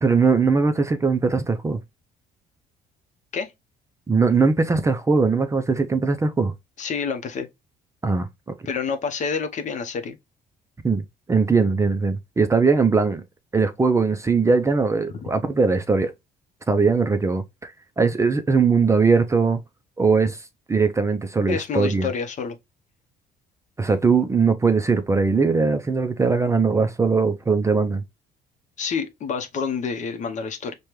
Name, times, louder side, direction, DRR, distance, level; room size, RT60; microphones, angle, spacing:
voice 1, 0.0-1.8 4.1-6.5 8.0-8.3 10.8-11.0 11.3-13.2 13.5-16.1 16.7-19.6 20.0-20.4 20.7-22.1 23.8-28.0, right 4 dB, 15° right, 0.4 m, -20 dB
voice 2, 6.8-7.5 8.7-10.2 15.1-15.3 21.5-22.6 28.8-30.7, left 5 dB, 45° left, 0.7 m, -28 dB
5.0 x 2.2 x 3.0 m
cardioid pair, 110°, 17 cm